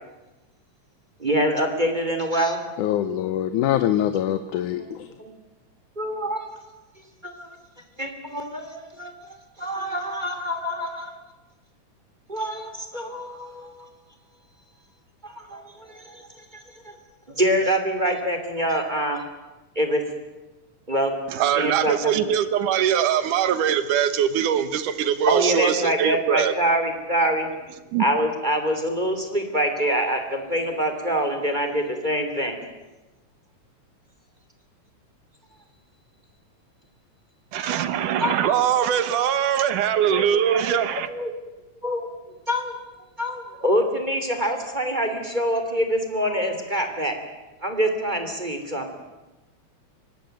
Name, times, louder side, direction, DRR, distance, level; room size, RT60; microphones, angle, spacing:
voice 1, 1.2-2.6 5.2-5.3 6.0-6.5 7.2-7.6 8.0-11.2 12.3-13.9 15.2-16.6 16.8-17.0 17.3-19.2 19.7-20.0 20.9-22.2 25.3-27.5 28.0-32.6 38.2-38.6 40.1-40.7 41.1-41.3 41.8-42.1 42.5-42.7 43.2-47.2 47.6-48.9, equal, 15° right, 5 dB, 2.7 m, -25 dB
voice 2, 2.8-5.1, left 11 dB, 80° left, 9 dB, 2.4 m, -24 dB
voice 3, 21.3-26.5 27.9-28.0 37.5-41.1, right 9 dB, 90° right, 12 dB, 2.9 m, -22 dB
24.0 x 19.0 x 9.1 m, 1.1 s
omnidirectional pair, 3.5 m